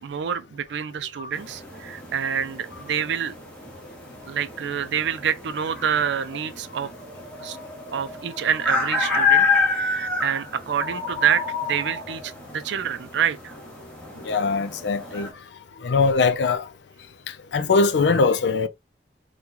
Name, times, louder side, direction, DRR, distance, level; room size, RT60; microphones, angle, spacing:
voice 1, 0.0-3.3 4.2-6.9 7.4-7.6 7.9-13.5, right 8 dB, 85° right, 0.4 m, -27 dB
sound 1, 1.3-15.3, left 4 dB, 5° left, 1.0 m, -29 dB
voice 2, 14.3-15.3 15.8-16.6 17.5-18.7, left 4 dB, 80° left, 0.4 m, -21 dB
2.9 x 2.2 x 3.7 m
head